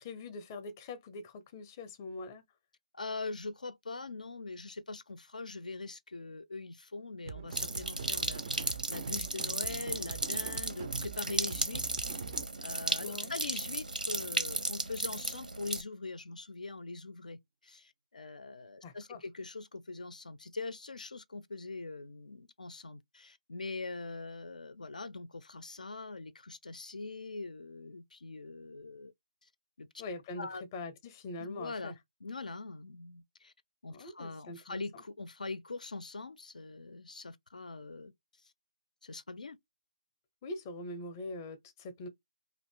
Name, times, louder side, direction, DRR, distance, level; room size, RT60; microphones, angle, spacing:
voice 1, 0.0-2.4 13.0-13.3 18.8-19.2 30.0-31.9 33.9-35.0 40.4-42.1, left 2 dB, 20° left, 0.6 m, -43 dB
voice 2, 2.9-11.8 12.6-29.1 29.4-29.5 29.8-29.9 30.4-30.6 31.4-32.0 32.2-33.5 33.8-38.1 39.0-39.6, left 3 dB, 70° left, 0.4 m, -42 dB
sound 1, 7.3-14.2, right 6 dB, 30° right, 0.3 m, -44 dB
sound 2, 7.5-15.8, right 2 dB, 90° right, 0.7 m, -35 dB
2.5 x 2.4 x 3.6 m
figure-of-eight pair, 155°, 4 cm